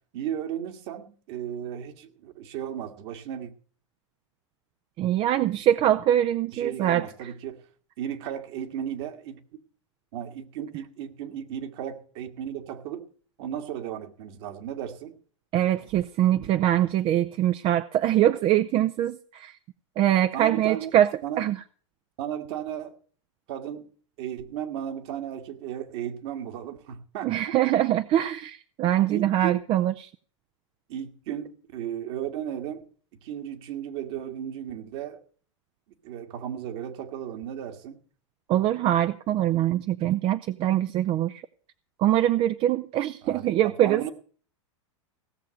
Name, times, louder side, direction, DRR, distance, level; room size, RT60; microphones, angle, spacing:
voice 1, 0.1-3.5 6.5-7.6 8.0-9.4 10.1-13.1 13.4-15.1 20.3-20.9 21.2-21.4 22.2-23.0 23.5-23.9 24.2-27.6 29.1-29.6 30.9-32.9 33.2-35.2 36.0-38.0 43.2-44.1, right 10 dB, 60° right, 1.9 m, -35 dB
voice 2, 5.0-7.1 15.5-19.5 20.0-21.6 27.2-30.1 38.5-41.4 42.0-44.1, right 12 dB, 35° right, 0.5 m, -23 dB
17.0 x 6.7 x 6.4 m
hypercardioid pair, 105°, 16 cm